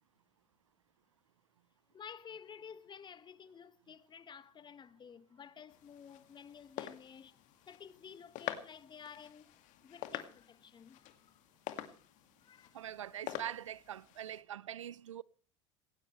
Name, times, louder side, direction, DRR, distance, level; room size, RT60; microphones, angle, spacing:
voice 1, 1.9-11.3 11.8-12.0 12.4-12.8, left 7 dB, 30° left, 1.4 m, -53 dB
sound 1, 5.7-14.4, left 13 dB, 50° left, 2.3 m, -47 dB
voice 2, 12.7-15.2, right 10 dB, 80° right, 0.6 m, -43 dB
18.5 x 18.0 x 3.3 m
figure-of-eight pair, 75°, 16 cm